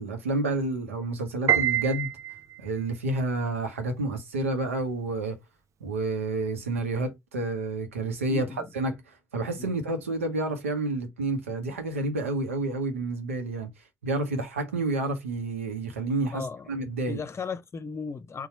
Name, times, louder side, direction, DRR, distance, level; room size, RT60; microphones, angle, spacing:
voice 1, 0.0-2.1 2.6-5.4 5.8-9.0 9.3-13.7 14.0-17.2, right 2 dB, 90° right, 0.8 m, -29 dB
Piano, 1.5-2.8, right 10 dB, 45° right, 0.5 m, -26 dB
voice 2, 8.3-8.7 9.6-9.7 16.3-16.7 17.1-18.5, left 5 dB, 40° left, 0.6 m, -36 dB
4.1 x 2.3 x 4.3 m
hypercardioid pair, 45°, 7 cm